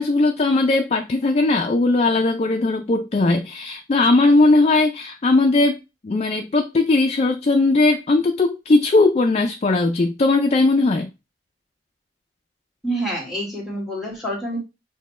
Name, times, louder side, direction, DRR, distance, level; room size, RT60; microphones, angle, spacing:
voice 1, 0.0-5.8 6.0-11.1, left 2 dB, 35° left, 0.3 m, -18 dB
voice 2, 12.8-14.6, right 1 dB, ahead, 1.5 m, -27 dB
6.3 x 2.2 x 3.1 m
head